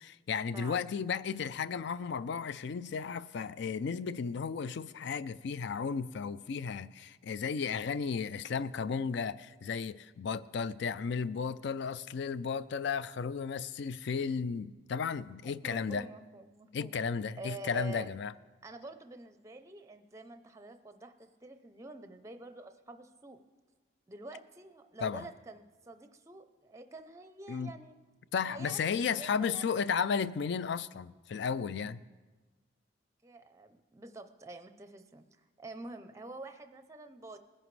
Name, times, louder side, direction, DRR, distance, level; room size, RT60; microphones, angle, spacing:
voice 1, 0.0-16.1 16.7-18.3 25.0-25.2 27.5-27.7 28.3-32.0, left 6 dB, 60° left, 0.4 m, -34 dB
voice 2, 0.5-0.9 15.4-17.0 17.4-18.2 18.6-23.4 24.1-28.0 28.5-29.8 33.2-37.4, right 2 dB, 15° right, 0.5 m, -48 dB
20.0 x 11.0 x 3.2 m
head